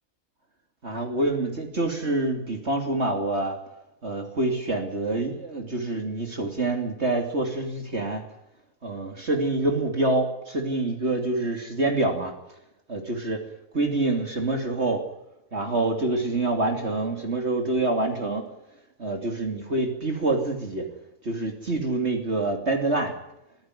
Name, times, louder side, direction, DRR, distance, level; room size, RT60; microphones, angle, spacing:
voice 1, 0.8-3.6 4.0-8.2 8.8-12.3 12.9-13.4 13.7-15.0 15.5-18.5 19.0-20.9 21.2-23.1, right 2 dB, 45° right, 4 dB, 3.1 m, -26 dB
23.5 x 16.0 x 9.9 m, 0.86 s
omnidirectional pair, 1.5 m